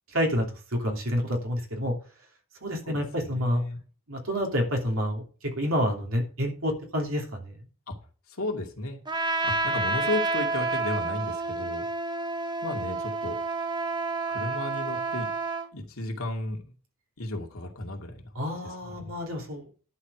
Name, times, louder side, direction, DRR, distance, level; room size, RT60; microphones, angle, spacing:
voice 1, 0.1-1.9 2.6-3.6 4.1-7.6 18.3-19.7, equal, 75° right, 2 dB, 3.0 m, -28 dB
voice 2, 2.9-3.8 7.9-8.0 8.3-9.0 9.4-11.8 12.6-13.4 14.3-15.3 15.7-16.7 17.2-18.2 18.6-19.1, left 2 dB, 80° left, 2 dB, 2.4 m, -34 dB
Trumpet, 9.1-15.7, right 3 dB, 20° right, 0.9 m, -29 dB
11.0 x 4.9 x 7.9 m, 0.39 s
head